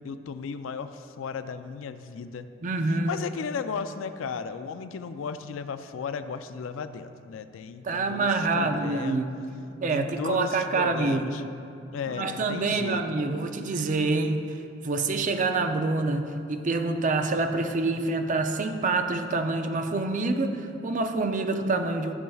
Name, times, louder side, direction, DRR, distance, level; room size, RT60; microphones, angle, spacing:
voice 1, 0.0-2.5 3.1-9.2 9.9-11.4 11.9-13.0, left 5 dB, 70° left, 10 dB, 0.3 m, -35 dB
voice 2, 2.6-3.1 7.8-9.3 9.8-11.3 12.1-14.6 14.8-22.1, right 3 dB, 40° right, 6 dB, 0.5 m, -26 dB
13.5 x 6.8 x 2.3 m, 2.5 s
head